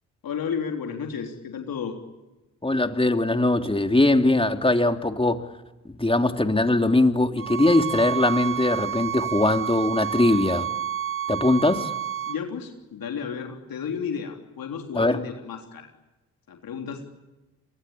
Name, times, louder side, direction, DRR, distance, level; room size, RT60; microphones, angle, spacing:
voice 1, 0.2-2.0 12.3-15.9 16.5-17.1, left 6 dB, 65° left, 4 dB, 3.5 m, -32 dB
voice 2, 2.6-5.5 6.0-10.7 11.3-11.9 14.9-15.2, left 2 dB, 15° left, 6 dB, 3.0 m, -21 dB
sound 1, 7.4-12.4, right 10 dB, 35° right, 0.9 m, -30 dB
30.0 x 23.0 x 8.7 m, 1.1 s
hypercardioid pair, 45°, 37 cm